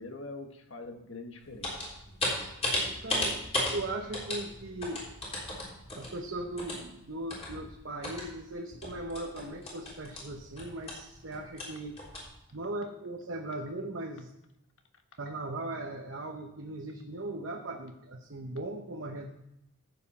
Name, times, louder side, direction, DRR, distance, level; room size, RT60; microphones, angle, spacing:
voice 1, 0.0-1.8 2.1-2.3, left 2 dB, 65° left, 1.4 m, -44 dB
sound 1, 1.4-8.3 8.7-12.2, left 1 dB, 30° left, 3.5 m, -35 dB
voice 2, 2.8-5.0 6.0-12.0 12.5-14.3 15.2-19.3, right 2 dB, 60° right, 0.9 m, -38 dB
14.0 x 8.2 x 4.2 m
head